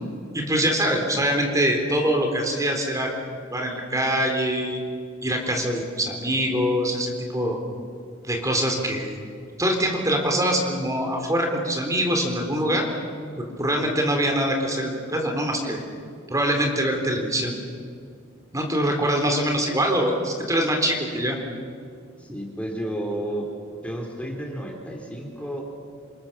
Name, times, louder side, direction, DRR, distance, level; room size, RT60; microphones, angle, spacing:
voice 1, 0.3-3.1 3.5-4.8 5.2-7.6 8.2-9.2 9.6-12.9 13.4-15.8 16.3-17.6 18.5-21.4, equal, 15° right, 2 dB, 3.8 m, -24 dB
voice 2, 22.2-23.5 23.8-25.6, right 1 dB, 5° left, 1 dB, 3.5 m, -31 dB
27.5 x 27.0 x 7.4 m, 2.2 s
head